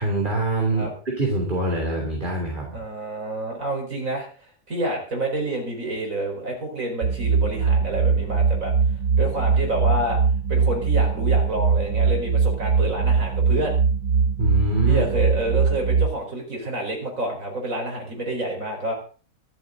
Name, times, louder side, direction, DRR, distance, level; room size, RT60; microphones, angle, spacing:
voice 1, 0.0-2.8 14.4-15.1, right 2 dB, 30° right, 0 dB, 3.4 m, -24 dB
voice 2, 2.7-8.7 9.2-10.2 10.5-13.7 14.9-18.9, right 1 dB, 55° right, 1 dB, 5.0 m, -28 dB
sound 1, 7.0-16.1, right 5 dB, 70° right, 1.4 m, -21 dB
24.5 x 8.2 x 3.9 m, 0.38 s
omnidirectional pair, 1.7 m